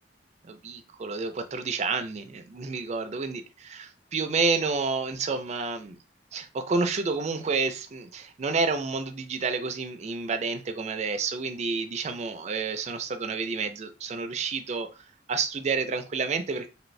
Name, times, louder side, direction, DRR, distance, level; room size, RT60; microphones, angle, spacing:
voice 1, 0.4-6.0 6.3-16.7, right 4 dB, 40° right, 7 dB, 0.4 m, -30 dB
2.7 x 2.6 x 3.1 m, 0.30 s
head